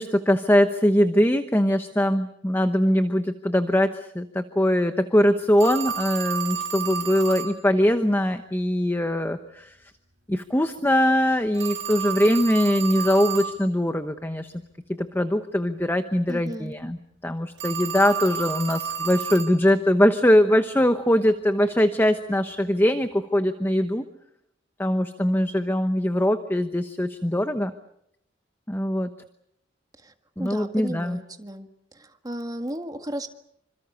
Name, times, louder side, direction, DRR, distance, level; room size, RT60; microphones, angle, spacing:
voice 1, 0.0-9.8 10.3-14.5 14.9-24.1 24.8-27.7 28.7-29.1 30.4-31.2, equal, 10° left, 9 dB, 1.0 m, -22 dB
Telephone, 5.6-7.6 11.5-13.6 17.6-19.6, right 8 dB, 60° right, 3.2 m, -31 dB
voice 2, 16.3-16.8 30.0-30.1 30.4-31.7 31.9-33.3, right 1 dB, 20° right, 6 dB, 1.8 m, -34 dB
27.0 x 26.0 x 6.9 m, 0.76 s
head